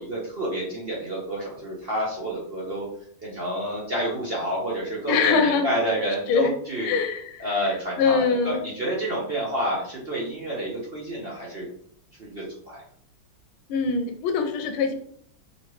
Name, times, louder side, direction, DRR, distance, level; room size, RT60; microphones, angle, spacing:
voice 1, 0.0-2.9 3.2-6.9 7.4-11.7 12.2-12.8, right 1 dB, 65° right, -4 dB, 0.5 m, -29 dB
voice 2, 5.1-5.7 6.3-6.5 6.8-8.6 13.7-14.9, left 5 dB, 80° left, 6 dB, 1.4 m, -23 dB
4.7 x 3.1 x 3.1 m, 0.62 s
omnidirectional pair, 2.4 m